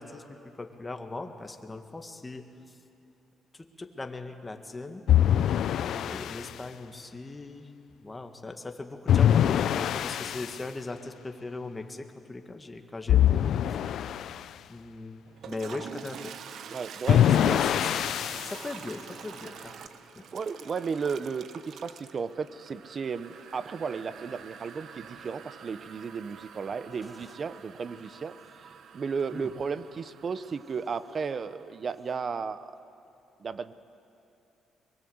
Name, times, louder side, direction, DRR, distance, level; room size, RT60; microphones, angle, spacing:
voice 1, 0.0-2.8 3.5-5.0 5.8-7.7 8.0-13.4 13.7-13.8 14.7-16.3 17.2-19.7 20.2-20.3 27.0-27.3 29.3-29.5, left 2 dB, 20° left, 5 dB, 1.8 m, -40 dB
sound 1, 5.1-6.5 9.1-10.6 13.1-14.4 17.1-18.6, left 10 dB, 70° left, 0.5 m, -23 dB
Toilet flush, 15.3-32.0, right 7 dB, 70° right, 1.1 m, -47 dB
voice 2, 16.7-17.6 20.3-28.4 28.9-32.7 33.4-33.7, right 5 dB, 45° right, 14 dB, 0.9 m, -34 dB
23.0 x 22.0 x 8.0 m, 2.7 s
cardioid pair, 90°, 0 cm